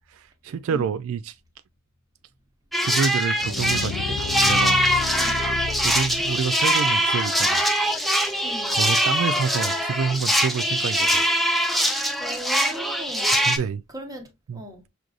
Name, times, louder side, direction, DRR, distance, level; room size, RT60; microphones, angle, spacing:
voice 1, 0.1-1.3 2.8-4.2 4.4-4.8 5.8-7.7 8.7-11.2 13.5-13.8 14.5-14.6, right 6 dB, 85° right, 0.3 m, -28 dB
voice 2, 0.7-1.0 5.1-5.4 8.4-8.7 12.2-13.6 13.9-14.8, equal, 20° right, 1.0 m, -39 dB
sound 1, 2.7-13.6, equal, ahead, 0.5 m, -22 dB
sound 2, 3.4-6.6, left 6 dB, 80° left, 0.3 m, -32 dB
6.1 x 2.6 x 2.4 m
head